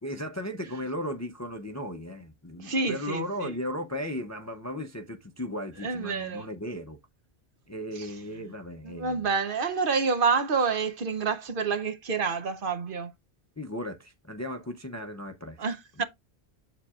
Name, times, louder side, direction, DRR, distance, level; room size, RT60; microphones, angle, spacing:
voice 1, 0.0-7.0 7.7-9.2 13.6-15.6 16.0-16.1, left 1 dB, 20° left, 0.5 m, -36 dB
voice 2, 2.6-3.5 5.8-6.5 7.9-8.1 8.8-13.1 15.6-16.0, right 5 dB, 55° right, 1.0 m, -28 dB
7.6 x 7.1 x 2.4 m
omnidirectional pair, 1.1 m